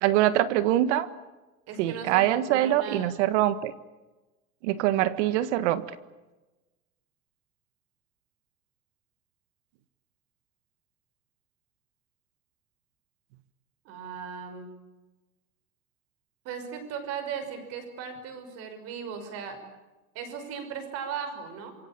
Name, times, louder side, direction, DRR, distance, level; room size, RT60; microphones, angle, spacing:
voice 1, 0.0-1.1 1.8-3.7 4.6-5.8, right 13 dB, 50° right, 14 dB, 1.5 m, -24 dB
voice 2, 1.7-3.2 13.8-14.7 16.4-19.6 20.1-21.8, right 7 dB, 35° right, 8 dB, 5.7 m, -37 dB
27.0 x 24.0 x 8.8 m, 1.1 s
supercardioid pair, 175°, 43 cm